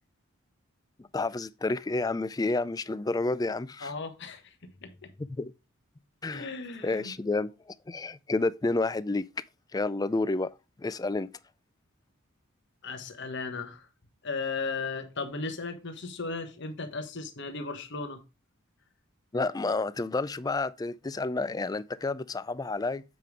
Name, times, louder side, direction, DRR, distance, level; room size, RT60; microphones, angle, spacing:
voice 1, 1.0-3.9 5.2-5.5 6.2-6.5 6.8-9.3 9.7-10.5 10.8-11.3 19.3-23.0, left 3 dB, 20° left, 0.3 m, -30 dB
voice 2, 3.8-5.1 6.3-7.1 12.8-13.9 14.2-18.2, left 4 dB, 55° left, 1.2 m, -36 dB
7.9 x 5.3 x 4.7 m
head